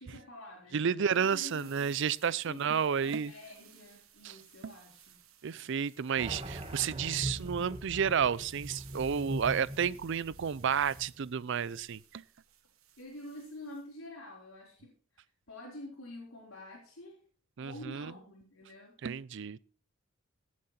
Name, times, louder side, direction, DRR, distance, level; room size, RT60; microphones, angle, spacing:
voice 1, 0.0-2.0 2.4-5.2 13.0-17.2 17.6-19.0, left 1 dB, 75° left, 4.2 m, -48 dB
voice 2, 0.7-3.3 4.2-4.4 4.6-4.7 5.4-12.2 17.6-18.1 19.0-19.6, right 7 dB, 60° right, 0.5 m, -31 dB
sound 1, 1.0-13.9, right 11 dB, 80° right, 1.4 m, -60 dB
sound 2, 6.2-11.4, right 1 dB, 30° right, 1.5 m, -41 dB
17.5 x 7.6 x 4.3 m
head